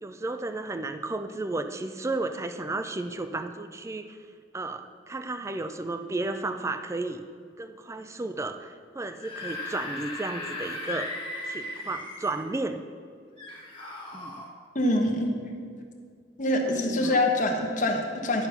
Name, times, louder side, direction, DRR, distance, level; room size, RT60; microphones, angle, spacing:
voice 1, 0.0-4.2 4.5-7.2 7.6-11.1 11.5-12.8 14.1-14.3 16.7-17.2, right 2 dB, 15° right, 9 dB, 0.4 m, -33 dB
Screaming / Screech, 9.0-12.4 13.4-14.5, left 2 dB, 30° left, 1.7 m, -37 dB
voice 2, 14.7-15.3 16.4-18.5, left 1 dB, 45° left, 2 dB, 1.2 m, -25 dB
11.0 x 5.3 x 5.9 m, 2.1 s
head